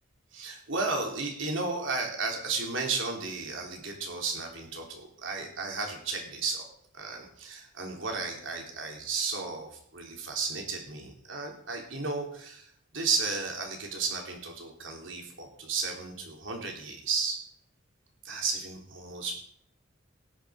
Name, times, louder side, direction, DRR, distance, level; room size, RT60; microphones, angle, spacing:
voice 1, 0.3-6.7 6.9-17.4 18.2-19.3, right 4 dB, 75° right, 1 dB, 3.7 m, -33 dB
18.0 x 6.4 x 6.5 m, 0.64 s
head